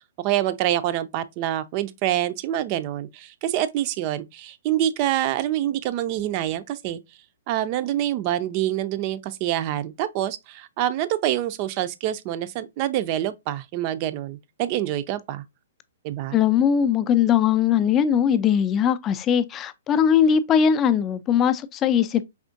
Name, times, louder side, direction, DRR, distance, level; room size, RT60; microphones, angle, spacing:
voice 1, 0.2-7.0 7.5-15.4 16.0-16.4, right 12 dB, 40° right, 0.5 m, -26 dB
voice 2, 16.3-22.2, left 8 dB, 25° left, 0.4 m, -20 dB
4.8 x 3.5 x 2.6 m
hypercardioid pair, 130°, 0 cm